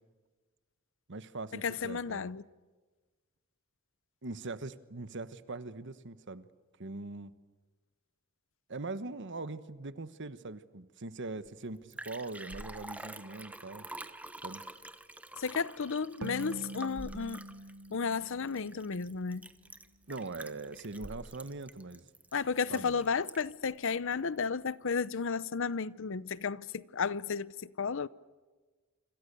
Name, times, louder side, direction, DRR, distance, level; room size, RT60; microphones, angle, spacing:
voice 1, 1.1-2.3 4.2-6.5 6.8-7.3 8.7-13.9 14.4-14.6 20.1-22.0 22.7-23.0, right 3 dB, 60° right, 1.2 m, -41 dB
voice 2, 1.6-2.4 15.4-17.4 17.9-19.4 22.3-27.5 27.8-28.1, left 5 dB, 65° left, 0.7 m, -33 dB
Liquid, 11.5-11.6 11.7-23.7 24.1-24.2, right 1 dB, 5° right, 1.1 m, -47 dB
sound 1, 16.2-19.7, right 1 dB, 85° right, 1.0 m, -45 dB
27.5 x 26.5 x 6.9 m
head